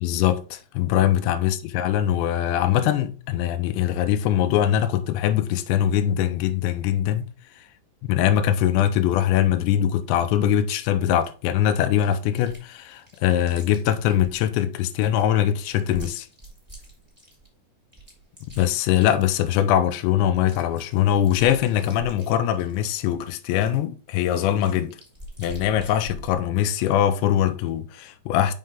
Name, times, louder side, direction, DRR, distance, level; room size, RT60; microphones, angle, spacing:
voice 1, 0.0-7.3 8.0-16.3 18.5-25.0 25.4-28.5, left 11 dB, 85° left, 2.8 m, -22 dB
Chewing mastication, 11.1-11.3 11.9-12.7 12.9-14.4 14.9-17.5 17.9-19.8 20.1-20.2 20.3-22.8 23.4-26.4, right 2 dB, 5° right, 2.1 m, -44 dB
6.3 x 5.6 x 3.5 m
omnidirectional pair, 5.4 m